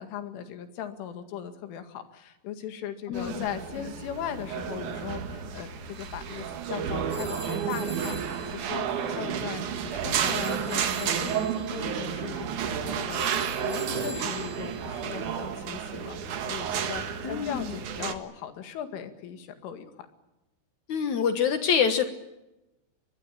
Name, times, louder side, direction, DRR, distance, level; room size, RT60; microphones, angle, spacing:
voice 1, 0.0-13.3 13.6-20.1, left 9 dB, 85° left, 8 dB, 4.6 m, -38 dB
voice 2, 3.1-3.5 17.2-17.7 20.9-22.0, left 7 dB, 70° left, 9 dB, 1.8 m, -26 dB
sound 1, 3.1-18.2, right 8 dB, 60° right, 2.3 m, -31 dB
sound 2, 5.9-15.4, right 2 dB, 5° right, 5.0 m, -44 dB
23.5 x 22.0 x 8.9 m, 0.96 s
omnidirectional pair, 5.5 m